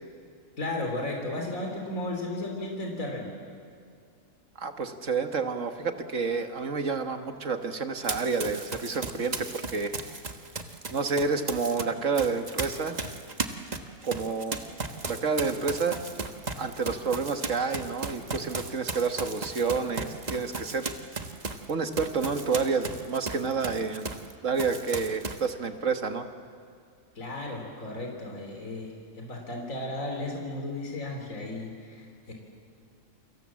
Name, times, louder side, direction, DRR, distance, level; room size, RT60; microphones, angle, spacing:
voice 1, 0.6-3.3 27.2-32.3, left 2 dB, 65° left, 1 dB, 3.9 m, -34 dB
voice 2, 4.6-9.9 10.9-13.0 14.0-14.6 15.1-16.0 16.6-20.9 21.7-24.1 24.4-26.3, right 5 dB, 60° right, 7 dB, 1.8 m, -29 dB
Run, 8.0-11.8 12.2-24.3 24.6-25.5, right 3 dB, 30° right, 1.4 m, -36 dB
29.0 x 25.5 x 7.6 m, 2.3 s
omnidirectional pair, 1.5 m